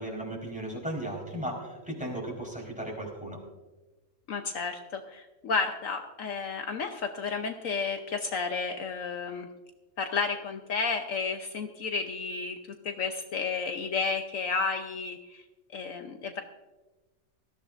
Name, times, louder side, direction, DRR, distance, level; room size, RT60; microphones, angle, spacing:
voice 1, 0.0-3.4, right 1 dB, 5° right, -2 dB, 4.2 m, -36 dB
voice 2, 4.3-9.5 10.0-12.6 12.8-15.4 15.7-16.4, left 5 dB, 65° left, 5 dB, 1.2 m, -32 dB
20.5 x 14.5 x 2.5 m, 1.2 s
omnidirectional pair, 1.5 m